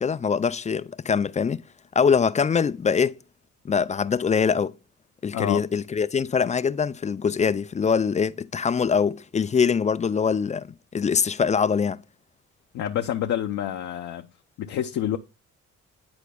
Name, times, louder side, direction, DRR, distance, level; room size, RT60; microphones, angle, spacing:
voice 1, 0.0-1.6 2.0-3.2 3.6-4.7 5.2-10.7 10.9-12.0, left 6 dB, 25° left, 0.3 m, -23 dB
voice 2, 5.3-5.7 12.7-14.3 14.6-15.2, left 10 dB, 70° left, 0.7 m, -28 dB
10.5 x 4.5 x 2.2 m
cardioid pair, 90°, 30 cm